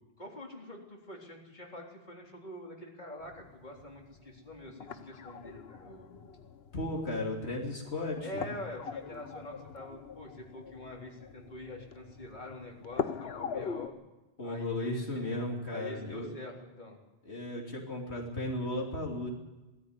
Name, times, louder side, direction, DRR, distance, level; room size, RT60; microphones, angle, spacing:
voice 1, 0.2-6.1 8.2-13.9 14.4-15.0 15.7-17.0, left 1 dB, 45° left, -1 dB, 3.8 m, -45 dB
sound 1, 3.2-13.9, left 6 dB, 70° left, 1.2 m, -43 dB
voice 2, 6.7-8.5 14.4-16.3 17.2-19.3, left 1 dB, 90° left, -1 dB, 3.2 m, -35 dB
19.5 x 14.0 x 9.8 m, 1.1 s
omnidirectional pair, 1.1 m